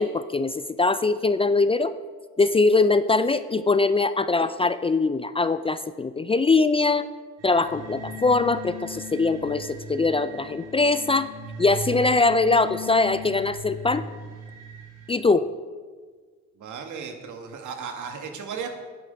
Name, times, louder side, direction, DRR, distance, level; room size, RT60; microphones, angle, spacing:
voice 1, 0.0-1.9 2.4-7.0 7.4-11.3 11.6-14.0 15.1-15.4, left 3 dB, 20° left, 13 dB, 0.3 m, -22 dB
sound 1, 7.4-15.1, equal, 55° right, 2.9 m, -38 dB
voice 2, 16.6-18.7, right 6 dB, 75° right, 5 dB, 1.6 m, -35 dB
9.9 x 9.4 x 5.1 m, 1.5 s
cardioid pair, 90°, 30 cm